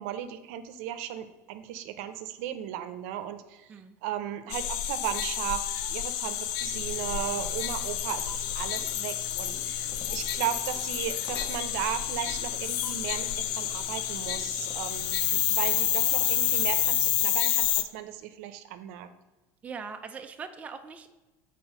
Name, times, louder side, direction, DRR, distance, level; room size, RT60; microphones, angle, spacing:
voice 1, 0.0-3.7 4.0-19.1, right 11 dB, 75° right, 10 dB, 0.7 m, -36 dB
sound 1, 4.5-17.8, left 11 dB, 65° left, 0.6 m, -29 dB
sound 2, 6.6-17.3, left 6 dB, 30° left, 0.7 m, -48 dB
voice 2, 19.6-21.2, right 5 dB, 20° right, 6 dB, 0.5 m, -41 dB
6.4 x 4.1 x 6.1 m, 1.1 s
cardioid pair, 145°, 8 cm